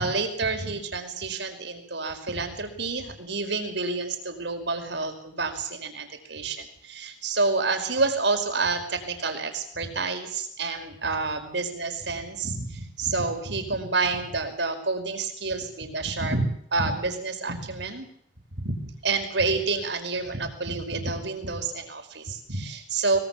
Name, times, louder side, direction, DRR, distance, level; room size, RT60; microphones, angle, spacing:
voice 1, 0.0-18.1 18.6-23.2, right 3 dB, 65° right, 6 dB, 5.2 m, -29 dB
24.5 x 21.5 x 7.3 m, 0.64 s
head